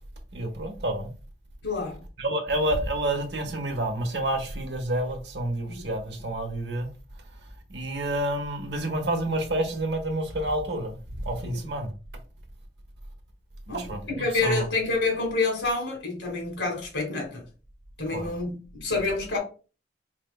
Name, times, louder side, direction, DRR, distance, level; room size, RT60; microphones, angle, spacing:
voice 1, 0.3-1.1 2.2-6.9 7.7-11.0 11.2-11.9 13.7-14.7 18.1-18.3, right 1 dB, 70° right, 0.9 m, -29 dB
voice 2, 1.6-2.0 5.7-5.9 11.4-11.6 13.7-17.4 18.0-19.4, left 3 dB, 85° left, 1.7 m, -28 dB
4.4 x 3.4 x 2.2 m
head